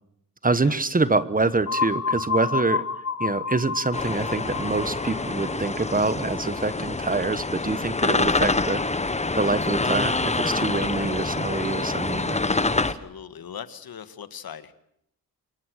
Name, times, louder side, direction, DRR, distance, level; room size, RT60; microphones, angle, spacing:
voice 1, 0.4-2.8 3.2-8.8 9.4-12.4, right 3 dB, 20° right, 14 dB, 1.3 m, -25 dB
sound 1, 1.7-7.3, left 5 dB, 45° left, 1.2 m, -30 dB
sound 2, 3.9-12.9, left 3 dB, 20° left, 1.3 m, -26 dB
voice 2, 12.9-14.7, left 8 dB, 70° left, 12 dB, 1.9 m, -40 dB
26.5 x 22.5 x 6.5 m, 0.74 s
wide cardioid pair, 110°, 37 cm